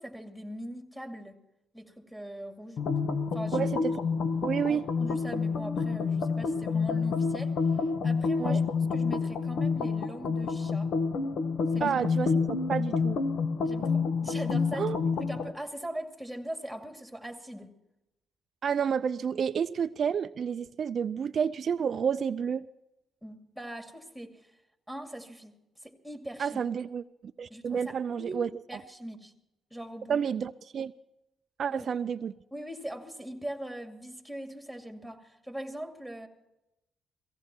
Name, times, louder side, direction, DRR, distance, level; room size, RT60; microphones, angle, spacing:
voice 1, 0.0-1.4 1.7-3.0 3.3-3.7 4.7-7.5 8.0-10.9 11.7-12.0 13.6-17.7 23.2-24.5 24.9-25.5 25.8-26.6 27.5-28.4 28.7-29.3 29.7-30.2 31.7-31.9 32.5-36.3, right 1 dB, ahead, 4 dB, 2.4 m, -41 dB
sound 1, 2.8-15.5, left 5 dB, 70° left, 1.3 m, -28 dB
voice 2, 4.4-4.8 8.4-8.6 11.8-13.2 14.8-15.0 18.6-22.7 26.4-27.0 27.4-28.5 30.1-30.9 31.6-32.3, right 7 dB, 55° right, 11 dB, 0.4 m, -30 dB
17.0 x 16.0 x 4.4 m, 0.91 s
cardioid pair, 90°, 0 cm